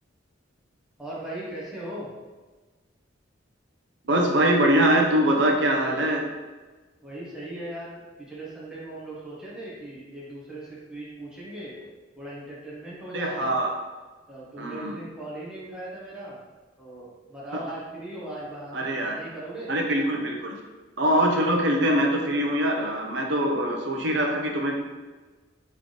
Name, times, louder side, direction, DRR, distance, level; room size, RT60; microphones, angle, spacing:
voice 1, 1.0-2.1 7.0-11.7 12.2-13.6 14.3-16.4 16.8-19.7, right 1 dB, 5° right, -8 dB, 1.1 m, -38 dB
voice 2, 4.1-6.2 13.1-13.7 14.6-15.0 17.5-17.6 18.7-19.2 19.7-20.5 21.0-24.8, right 1 dB, 65° right, 1 dB, 0.7 m, -23 dB
3.6 x 3.2 x 3.9 m, 1.3 s
head